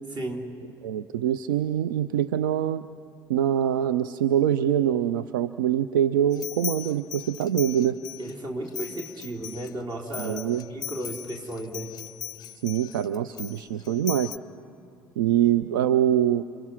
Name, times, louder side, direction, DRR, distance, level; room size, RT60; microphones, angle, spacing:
voice 1, 0.1-0.5 8.2-10.4 10.7-11.9, right 1 dB, 40° right, 1 dB, 3.3 m, -34 dB
voice 2, 0.8-2.8 3.3-8.0 10.2-10.6 12.6-14.3 15.2-16.4, right 10 dB, 65° right, 13 dB, 0.5 m, -24 dB
sound 1, 6.3-8.3 8.7-14.4, left 11 dB, 35° left, 0.5 m, -39 dB
29.5 x 24.0 x 6.0 m, 2.4 s
figure-of-eight pair, 60°, 12 cm